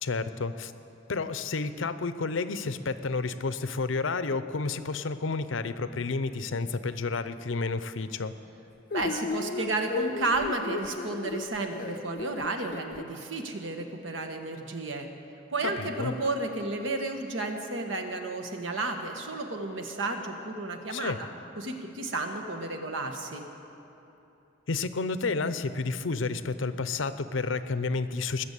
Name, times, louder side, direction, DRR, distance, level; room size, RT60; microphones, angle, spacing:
voice 1, 0.0-0.7 1.1-8.3 15.6-16.1 20.9-21.2 24.7-28.4, left 4 dB, 85° left, 12 dB, 0.7 m, -30 dB
sound 1, 8.9-13.0, left 3 dB, 45° left, 0.5 m, -35 dB
voice 2, 8.9-15.1 15.5-21.1 21.6-23.4, right 2 dB, 85° right, 4 dB, 1.4 m, -32 dB
20.0 x 7.1 x 8.3 m, 3.0 s
head